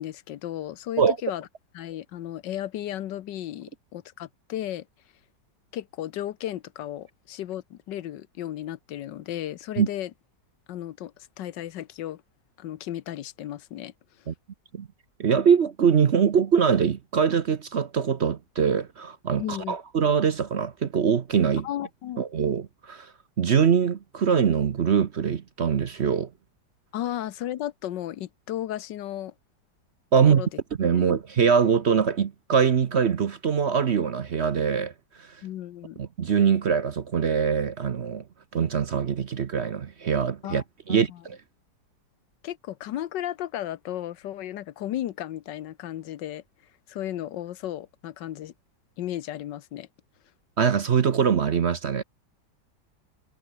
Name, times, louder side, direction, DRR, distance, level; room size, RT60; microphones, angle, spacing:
voice 1, 0.0-1.5 1.7-4.9 5.7-10.1 10.7-12.2 12.6-13.9 19.4-19.8 21.6-22.2 26.9-29.3 30.3-30.5 31.0-31.1 35.4-36.0 40.4-40.6 40.9-41.2 42.4-46.4 46.9-48.5 49.0-49.9, left 12 dB, 85° left, 1.5 m, -34 dB
voice 2, 15.2-21.7 22.2-23.1 23.4-26.3 30.1-30.4 30.8-34.9 35.2-35.3 36.0-38.2 38.5-41.4 50.6-52.0, right 7 dB, 50° right, 0.9 m, -23 dB
omnidirectional pair, 1.9 m